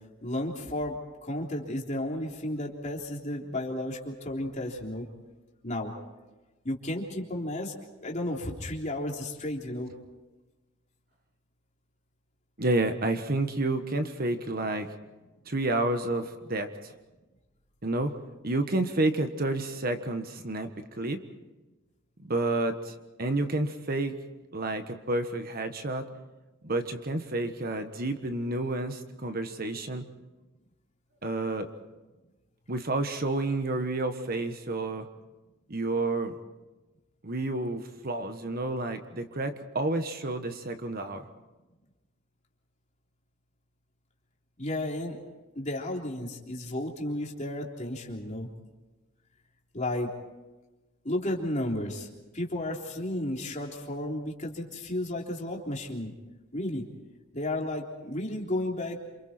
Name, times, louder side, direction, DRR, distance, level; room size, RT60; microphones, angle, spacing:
voice 1, 0.2-1.0 1.2-5.1 5.6-5.9 6.7-7.7 8.0-9.9 44.6-45.2 45.6-48.5 49.7-50.1 51.0-52.1 52.3-56.1 56.5-56.8 57.3-59.0, left 1 dB, 35° left, 0 dB, 3.5 m, -33 dB
voice 2, 12.6-14.9 15.4-16.9 17.8-18.1 18.4-20.7 21.0-21.2 22.2-24.1 24.5-26.1 26.6-30.0 31.2-31.7 32.7-35.1 35.7-36.4 37.2-41.3, right 2 dB, 45° right, 7 dB, 1.5 m, -30 dB
28.5 x 27.0 x 4.5 m, 1.1 s
head